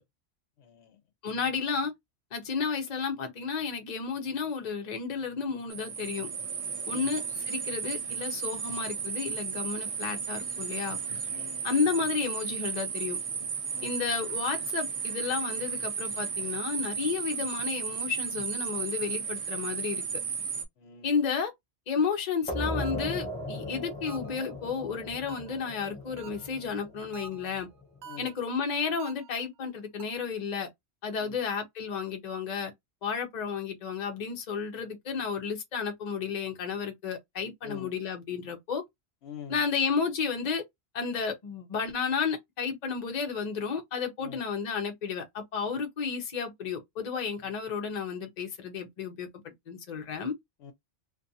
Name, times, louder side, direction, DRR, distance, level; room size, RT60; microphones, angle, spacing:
voice 1, 0.6-1.0 6.9-7.1 11.3-11.8 13.7-14.0 20.8-21.2 28.1-28.3 31.2-31.4 33.4-33.6 37.6-37.9 39.2-39.6 44.2-44.4 50.6-50.7, left 8 dB, 70° left, 0.9 m, -46 dB
voice 2, 1.2-1.9 2.3-6.3 6.9-11.0 11.6-13.2 13.8-20.0 21.0-21.5 21.9-27.7 28.2-30.7 31.0-32.7 33.0-38.8 39.5-40.6 40.9-49.3 49.7-50.3, left 5 dB, 45° left, 0.8 m, -32 dB
sound 1, 5.7-20.7, right 6 dB, 55° right, 0.4 m, -34 dB
sound 2, 22.5-27.8, left 1 dB, 10° left, 0.5 m, -37 dB
sound 3, 22.8-23.3 24.1-24.5 25.3-25.7 26.2-26.6 27.1-27.6 28.0-28.5 29.0-29.5 30.0-30.4, right 7 dB, 75° right, 0.9 m, -48 dB
2.5 x 2.2 x 2.6 m
omnidirectional pair, 1.2 m